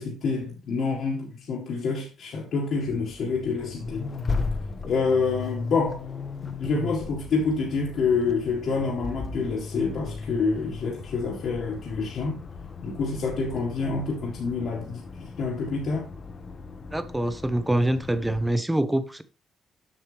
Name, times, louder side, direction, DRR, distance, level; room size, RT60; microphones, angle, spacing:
voice 1, 0.0-4.1 4.8-6.0 6.6-12.4 12.8-16.1, left 4 dB, 65° left, 1.8 m, -27 dB
Accelerating revving vroom, 2.8-18.5, left 4 dB, 40° left, 0.9 m, -37 dB
voice 2, 16.9-19.2, right 1 dB, 10° right, 0.9 m, -25 dB
7.6 x 6.5 x 3.4 m
cardioid pair, 90°, 0 cm